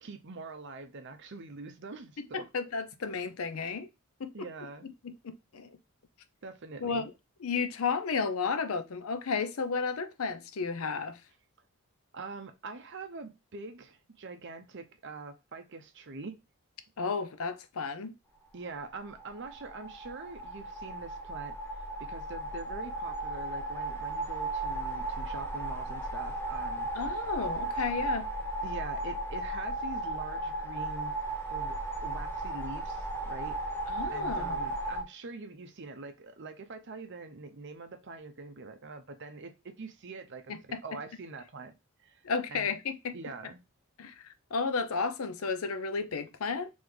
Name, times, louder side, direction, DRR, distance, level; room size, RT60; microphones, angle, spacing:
voice 1, 0.0-2.5 4.3-4.9 6.4-7.1 12.1-16.4 18.5-21.6 22.0-26.9 28.6-31.1 31.5-33.6 34.0-41.7 42.0-42.2 42.5-42.7 43.1-43.6, right 3 dB, 55° right, 0.7 m, -44 dB
voice 2, 2.2-3.9 4.2-4.5 4.8-5.8 6.8-7.1 7.4-11.2 17.0-18.1 27.0-28.3 33.9-34.7 40.5-40.8 42.2-43.2 44.0-46.7, left 5 dB, 70° left, 0.6 m, -33 dB
sound 1, 19.1-35.0, right 2 dB, 10° left, 0.9 m, -35 dB
4.2 x 3.5 x 3.2 m
head